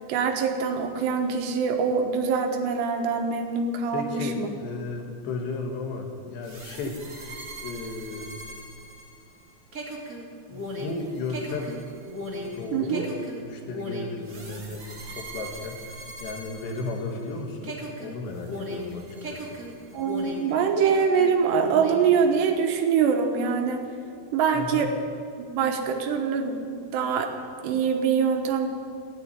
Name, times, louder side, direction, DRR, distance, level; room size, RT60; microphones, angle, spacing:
voice 1, 0.1-4.5 12.7-13.1 19.9-23.8 24.3-24.9 25.4-27.3 27.6-28.7, right 6 dB, 80° right, 4 dB, 3.3 m, -24 dB
voice 2, 3.9-7.0 7.6-8.4 10.5-11.8 12.4-19.6 24.5-24.9, left 3 dB, 75° left, 2 dB, 3.7 m, -35 dB
sound 1, 6.4-17.3 17.6-20.5 20.8-22.1, equal, 30° right, 1.6 m, -38 dB
15.5 x 9.8 x 9.5 m, 2.4 s
omnidirectional pair, 5.0 m